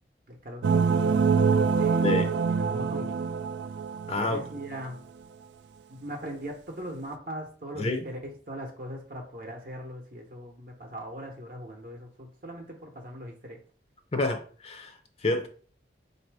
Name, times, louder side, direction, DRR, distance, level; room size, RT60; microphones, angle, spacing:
voice 1, 0.3-1.2 1.7-3.2 4.2-5.0 5.9-13.6, equal, 55° right, 0.8 m, -40 dB
sound 1, 0.6-4.6, right 5 dB, 85° right, 0.3 m, -25 dB
voice 2, 1.5-2.3 4.1-4.4 7.8-8.1 14.1-15.5, left 2 dB, 35° left, 0.5 m, -29 dB
4.1 x 2.6 x 4.6 m
head